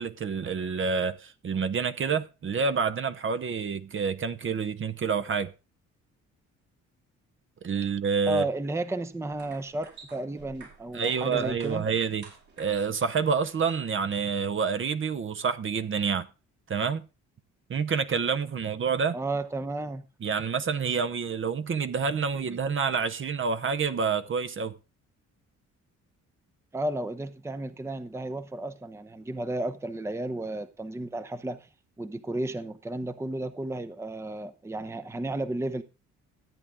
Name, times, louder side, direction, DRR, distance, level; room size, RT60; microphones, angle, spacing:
voice 1, 0.0-5.5 7.6-8.4 10.9-12.3 12.6-16.3 16.7-17.1 17.7-19.2 20.2-24.7, right 6 dB, 40° right, 0.9 m, -28 dB
voice 2, 8.3-11.9 19.1-20.0 22.5-22.6 26.7-31.7 32.0-35.8, right 1 dB, 10° right, 0.7 m, -33 dB
sound 1, 9.1-14.5, right 5 dB, 70° right, 5.9 m, -52 dB
13.5 x 8.6 x 3.6 m
cardioid pair, 90°, 30 cm